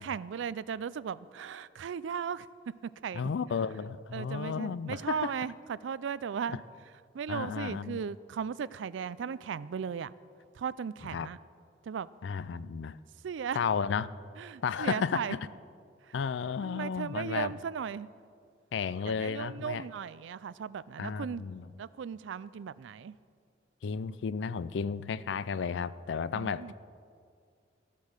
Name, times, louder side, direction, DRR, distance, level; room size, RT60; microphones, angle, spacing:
voice 1, 0.0-2.5 2.8-3.3 4.1-6.6 7.1-10.1 10.6-11.4 11.8-12.1 13.2-13.6 14.4-15.4 16.6-18.1 19.0-21.4 21.8-23.1 26.3-26.7, right 7 dB, 85° right, 18 dB, 0.4 m, -36 dB
voice 2, 3.1-5.3 6.5-6.6 7.3-8.0 11.1-11.3 12.2-13.0 13.5-14.1 14.6-15.4 16.1-17.5 18.7-19.9 21.0-21.7 23.8-26.7, left 6 dB, 80° left, 17 dB, 0.4 m, -33 dB
14.5 x 8.4 x 6.5 m, 2.3 s
head